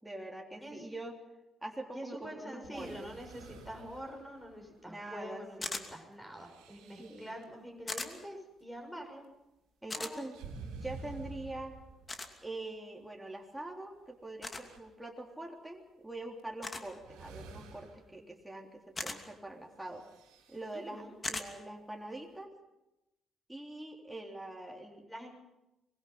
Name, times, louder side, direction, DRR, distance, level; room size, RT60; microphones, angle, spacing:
voice 1, 0.0-1.2 1.6-3.1 4.9-5.9 7.0-7.3 9.8-10.4 10.7-11.8 12.4-20.0 20.5-22.5 23.5-25.3, right 2 dB, 5° right, 0 dB, 3.6 m, -44 dB
voice 2, 1.9-9.3 9.9-10.2 20.7-21.2 25.1-25.3, equal, 10° left, 3 dB, 6.6 m, -46 dB
sound 1, 2.6-4.8 6.3-7.4 10.3-12.3 13.5-13.6 14.2-14.8 16.4-16.5 17.0-18.1 19.8-20.8, right 4 dB, 80° right, 3.1 m, -50 dB
sound 2, 5.6-5.9 7.9-8.1 9.9-10.1 12.1-12.3 14.4-14.6 16.6-16.9 18.9-19.2 21.2-21.5, left 2 dB, 30° left, 2.7 m, -38 dB
24.5 x 21.0 x 5.6 m, 0.94 s
hypercardioid pair, 50°, 0 cm